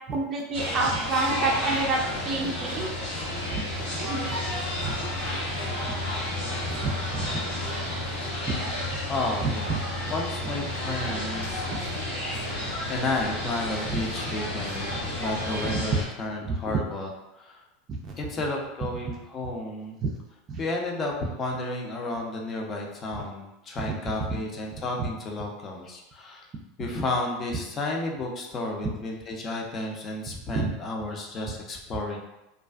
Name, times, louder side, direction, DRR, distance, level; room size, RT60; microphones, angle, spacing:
voice 1, 0.1-2.0 2.3-2.9 3.5-3.6 4.0-4.3 4.8-4.9 5.8-6.0 6.7-7.4 8.5-8.6 9.4-9.8 13.9-14.0 14.9-15.0 15.6-15.8 16.4-16.8 17.9-18.1 20.0-20.1 20.5-20.6 24.3-24.4 25.0-25.1 30.5-30.7, right 3 dB, 40° right, -1 dB, 0.4 m, -29 dB
sound 1, 0.5-16.1, left 1 dB, 90° left, 1.0 m, -31 dB
voice 2, 9.1-9.8 10.1-11.7 12.9-17.1 17.4-17.6 18.2-20.0 20.6-26.5 26.8-32.2, left 2 dB, 35° left, 0 dB, 0.6 m, -32 dB
2.4 x 2.3 x 2.3 m, 0.94 s
hypercardioid pair, 95°, 0 cm